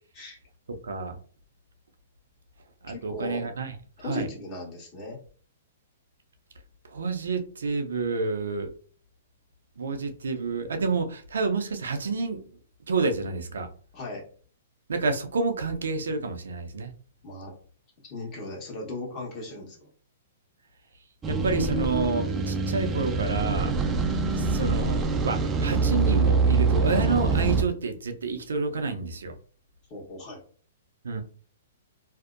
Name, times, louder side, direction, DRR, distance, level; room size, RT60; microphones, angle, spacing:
voice 1, 0.7-1.2 2.8-3.7 4.0-4.3 6.9-8.7 9.8-12.4 12.9-13.7 14.9-16.9 21.3-23.7 24.4-29.3 31.0-31.2, right 4 dB, 85° right, 0.5 m, -29 dB
voice 2, 2.9-3.5 4.0-5.2 13.9-14.2 17.2-17.5 18.0-19.8 29.9-30.4, left 2 dB, 30° left, 1.0 m, -37 dB
sound 1, 21.2-27.6, right 4 dB, 20° right, 0.3 m, -25 dB
2.6 x 2.0 x 2.4 m
hypercardioid pair, 135°, 0 cm